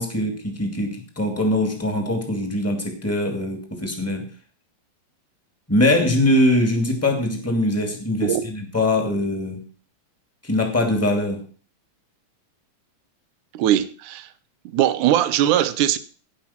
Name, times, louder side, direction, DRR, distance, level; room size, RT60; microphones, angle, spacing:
voice 1, 0.0-4.3 5.7-9.7 10.4-11.5, left 1 dB, 5° left, 1.9 m, -22 dB
voice 2, 13.5-14.3 14.7-16.0, right 12 dB, 70° right, 2.2 m, -20 dB
17.0 x 5.8 x 5.9 m
omnidirectional pair, 4.0 m